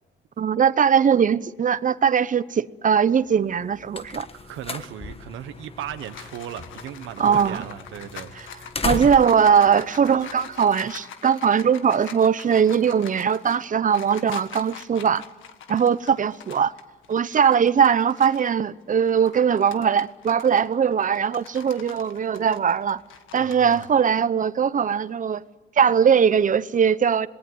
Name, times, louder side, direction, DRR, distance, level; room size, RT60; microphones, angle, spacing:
voice 1, 0.4-4.3 7.2-7.6 8.4-8.5 8.8-15.2 15.7-16.7 17.1-23.0 23.3-25.4 25.8-27.3, right 7 dB, 40° right, 0.8 m, -20 dB
sound 1, 3.4-10.9, left 4 dB, 30° left, 1.4 m, -36 dB
voice 2, 4.3-8.3 23.4-23.9, right 11 dB, 85° right, 1.2 m, -37 dB
sound 2, 5.6-18.5 19.0-23.9, left 8 dB, 80° left, 1.7 m, -43 dB
27.0 x 20.0 x 7.9 m
cardioid pair, 90°, 20 cm